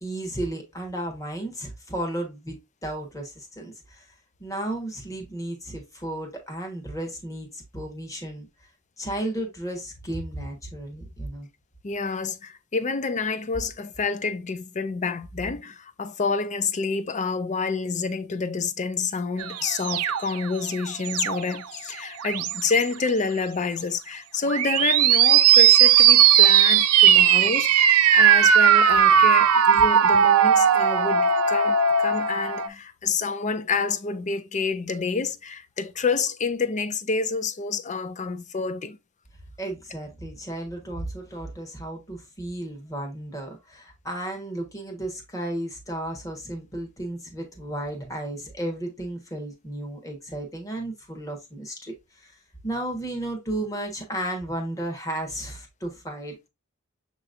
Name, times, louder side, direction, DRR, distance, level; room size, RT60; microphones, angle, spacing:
voice 1, 0.0-4.1 4.4-8.5 9.0-11.5 39.6-52.3 52.6-56.5, right 1 dB, 15° left, 1.3 m, -33 dB
voice 2, 11.8-39.0, left 4 dB, 35° left, 0.5 m, -28 dB
sound 1, 19.4-21.6 22.2-22.8 24.5-32.7, right 8 dB, 85° right, 0.5 m, -18 dB
6.7 x 3.0 x 2.5 m
head